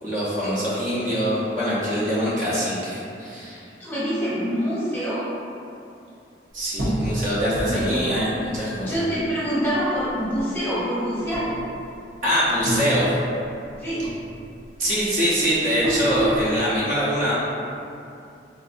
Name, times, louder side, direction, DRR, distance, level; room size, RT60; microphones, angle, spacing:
voice 1, 0.0-3.6 6.5-9.0 12.2-13.1 14.8-17.3, equal, 45° right, -9 dB, 0.8 m, -23 dB
voice 2, 3.8-5.2 7.7-8.0 8.7-11.5 13.8-14.1, equal, 10° left, -11 dB, 0.9 m, -26 dB
sound 1, 6.8-9.7 10.0-10.8 11.2-12.2 12.4-13.8 14.0-16.5, right 1 dB, 80° right, 0.8 m, -28 dB
3.9 x 2.6 x 2.5 m, 2.6 s
head